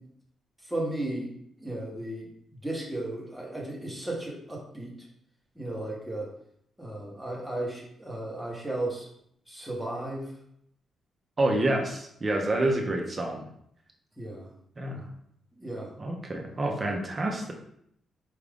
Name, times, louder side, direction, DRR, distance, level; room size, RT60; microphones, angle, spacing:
voice 1, 0.6-1.3 1.6-2.3 2.6-4.9 5.6-6.3 6.8-9.1 9.5-10.3 14.2-14.5 15.6-15.9, right 1 dB, ahead, -3 dB, 0.9 m, -34 dB
voice 2, 11.4-13.5 14.8-15.1 16.0-17.5, right 1 dB, 20° right, 1 dB, 0.5 m, -28 dB
4.7 x 2.5 x 3.4 m, 0.72 s
wide cardioid pair, 165°, 0 cm